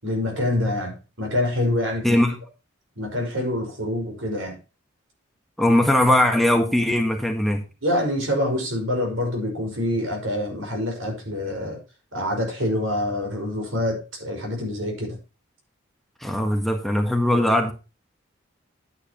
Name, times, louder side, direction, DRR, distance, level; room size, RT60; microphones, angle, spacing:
voice 1, 0.0-2.1 3.0-4.6 7.8-11.8 12.1-15.2, left 1 dB, 80° right, 5.3 m, -26 dB
voice 2, 2.0-2.4 5.6-7.6 16.2-17.7, left 1 dB, ahead, 1.5 m, -20 dB
11.0 x 9.4 x 3.0 m
head